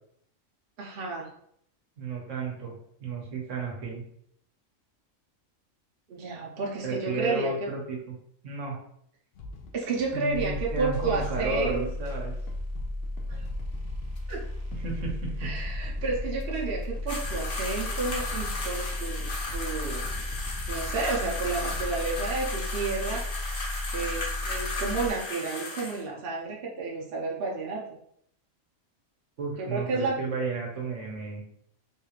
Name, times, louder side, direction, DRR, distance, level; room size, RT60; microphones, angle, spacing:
voice 1, 0.8-1.3 6.1-7.5 9.7-11.9 13.3-13.4 14.3-14.4 15.4-20.0 20.7-23.2 23.9-28.0 29.6-30.2, right 4 dB, 55° right, -2 dB, 0.8 m, -31 dB
voice 2, 2.0-2.7 3.0-4.0 6.8-8.2 8.4-8.8 10.1-12.3 14.8-15.5 29.4-31.4, right 3 dB, 70° right, -1 dB, 1.2 m, -33 dB
sound 1, 9.3-22.0, left 2 dB, 60° left, 0.7 m, -44 dB
sound 2, 10.3-25.1, left 1 dB, 25° right, 0.4 m, -34 dB
sound 3, 17.1-26.0, left 2 dB, 80° left, 1.4 m, -35 dB
3.7 x 3.0 x 2.4 m, 0.70 s
omnidirectional pair, 1.4 m